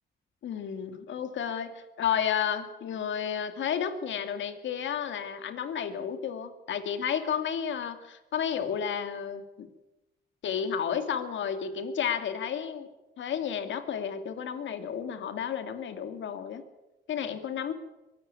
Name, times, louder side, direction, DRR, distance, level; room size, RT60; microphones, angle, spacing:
voice 1, 0.4-9.7 10.4-12.9 13.2-16.6 17.1-17.7, left 8 dB, 70° left, 9 dB, 2.5 m, -32 dB
23.0 x 13.5 x 9.6 m, 1.0 s
cardioid pair, 90°, 20 cm